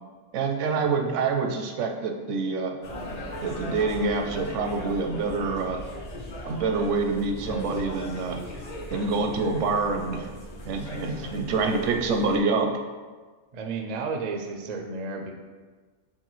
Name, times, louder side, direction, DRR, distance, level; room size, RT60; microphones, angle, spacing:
voice 1, 0.3-2.8 3.4-5.8 6.4-8.4 8.9-10.3 10.6-12.7, right 4 dB, 80° right, 4 dB, 0.9 m, -26 dB
sound 1, 2.8-12.4, equal, 45° left, 0.6 m, -38 dB
voice 2, 13.5-15.3, right 4 dB, 60° right, 3 dB, 0.4 m, -32 dB
4.6 x 3.6 x 3.0 m, 1.4 s
omnidirectional pair, 1.3 m